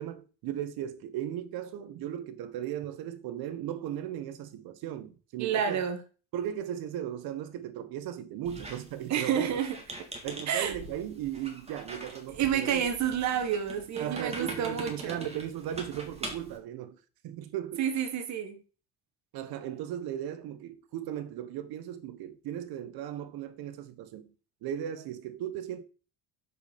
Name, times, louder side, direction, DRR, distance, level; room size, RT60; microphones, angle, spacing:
voice 1, 0.0-5.8 6.3-9.5 10.2-12.9 14.0-17.0 17.2-17.8 19.3-24.3 24.6-25.8, right 11 dB, 65° right, 1.1 m, -37 dB
voice 2, 5.4-6.0 9.1-9.8 10.5-10.7 12.3-15.2 17.8-18.6, right 8 dB, 45° right, 1.3 m, -29 dB
Squeak, 8.4-16.6, right 2 dB, 15° right, 1.9 m, -44 dB
6.3 x 5.4 x 5.1 m
cardioid pair, 130°, 40 cm